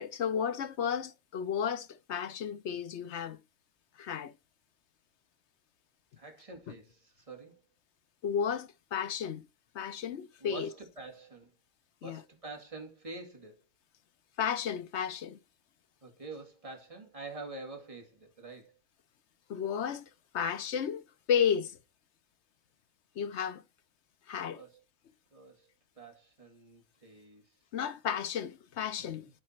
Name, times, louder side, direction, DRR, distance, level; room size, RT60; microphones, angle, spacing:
voice 1, 0.0-3.4 4.0-4.3 8.2-9.4 9.7-10.7 12.0-12.2 14.4-15.4 19.5-20.0 20.3-21.0 21.3-21.8 23.2-23.6 24.3-24.6 27.7-29.3, left 8 dB, 60° left, 0.9 m, -33 dB
voice 2, 6.2-7.6 10.4-11.5 12.0-13.6 16.0-18.8 24.5-24.8 25.3-25.7 26.0-27.5, right 3 dB, 25° right, 2.3 m, -46 dB
12.5 x 4.2 x 4.3 m
omnidirectional pair, 1.5 m